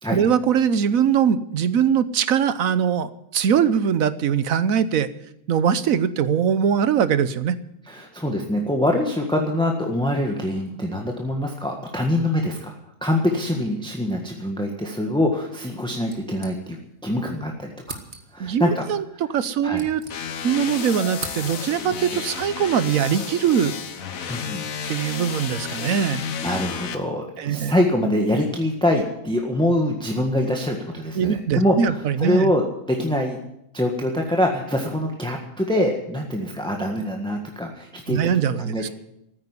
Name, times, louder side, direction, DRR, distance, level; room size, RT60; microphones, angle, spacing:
voice 1, 0.1-5.1 5.5-7.6 18.4-19.0 19.3-20.0 20.4-23.7 24.9-26.2 27.4-27.7 31.2-32.5 38.1-38.9, right 8 dB, 85° right, 14 dB, 1.3 m, -21 dB
voice 2, 7.8-12.7 13.0-16.8 17.0-18.0 18.3-18.8 19.6-19.8 24.3-24.6 26.4-32.6 32.9-33.4 33.7-38.9, left 1 dB, 5° left, 1 dB, 1.5 m, -24 dB
sound 1, 16.1-17.1 17.3-17.4 17.8-18.5 19.3-20.6 20.9-21.9, right 3 dB, 45° right, 1.8 m, -40 dB
sound 2, 20.1-26.9, left 7 dB, 85° left, 1.5 m, -32 dB
14.5 x 9.1 x 9.8 m, 0.80 s
omnidirectional pair, 1.4 m